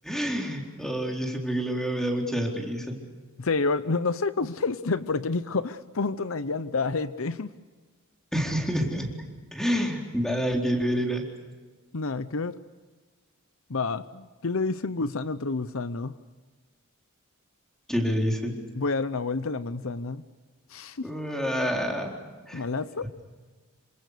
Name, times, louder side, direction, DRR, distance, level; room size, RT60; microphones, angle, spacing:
voice 1, 0.0-3.0 8.3-9.1 9.5-11.2 17.9-18.5 21.0-22.1 22.5-22.7, equal, ahead, 1 dB, 4.2 m, -28 dB
voice 2, 3.4-7.5 11.9-12.6 13.7-16.1 18.7-20.2 20.7-21.1 22.5-23.1, left 3 dB, 70° left, 14 dB, 0.8 m, -29 dB
28.0 x 25.5 x 6.8 m, 1.4 s
head